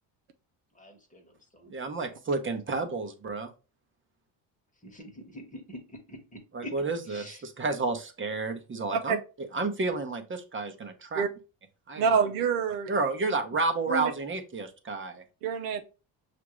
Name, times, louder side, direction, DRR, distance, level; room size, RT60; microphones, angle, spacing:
voice 1, 0.7-1.8 4.8-6.7 7.1-7.5, left 1 dB, 15° left, 1.1 m, -45 dB
voice 2, 1.7-3.5 6.5-9.2 9.5-11.2 11.9-12.3 12.9-15.2, right 3 dB, 25° right, 0.7 m, -31 dB
voice 3, 12.0-12.9 13.9-14.1 15.4-15.8, right 6 dB, 85° right, 0.7 m, -26 dB
5.7 x 2.5 x 3.0 m
supercardioid pair, 85°, 49 cm